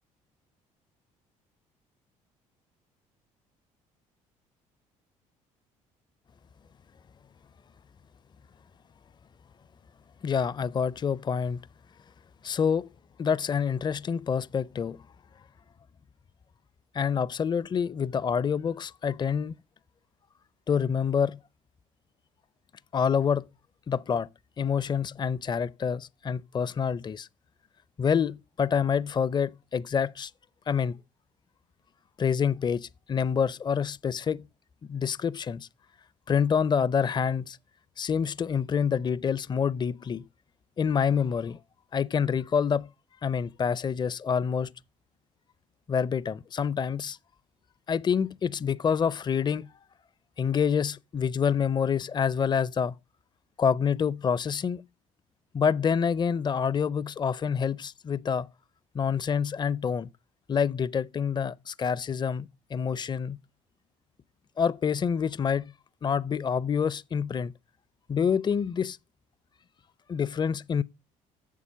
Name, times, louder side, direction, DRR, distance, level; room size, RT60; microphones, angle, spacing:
voice 1, 10.2-11.6 12.4-12.9 13.2-15.0 16.9-19.5 20.7-21.4 22.9-23.4 23.9-24.3 24.6-27.3 28.0-30.3 30.7-31.0 32.2-34.5 34.9-35.7 36.3-37.6 38.0-40.3 40.8-41.6 41.9-42.9 43.2-44.7 45.9-47.2 47.9-49.7 50.4-52.9 53.6-54.8 55.5-58.5 58.9-60.1 60.5-63.4 64.6-65.7 66.0-67.5 68.1-69.0 70.1-70.8, left 7 dB, 25° left, 0.4 m, -27 dB
8.4 x 7.1 x 6.7 m
hypercardioid pair, 60°, 16 cm